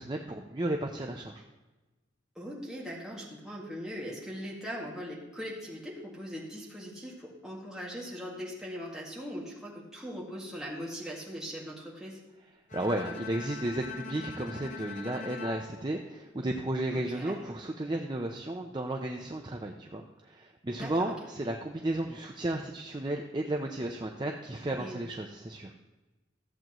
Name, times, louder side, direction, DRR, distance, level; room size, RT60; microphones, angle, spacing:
voice 1, 0.0-1.4 12.7-25.7, right 1 dB, 25° right, 2 dB, 0.5 m, -33 dB
voice 2, 2.4-12.2 16.9-17.4 20.8-21.1 24.7-25.0, equal, 5° right, -6 dB, 2.0 m, -40 dB
Bowed string instrument, 12.7-16.9, left 5 dB, 40° left, 0.8 m, -43 dB
14.0 x 7.6 x 3.0 m, 1.1 s
head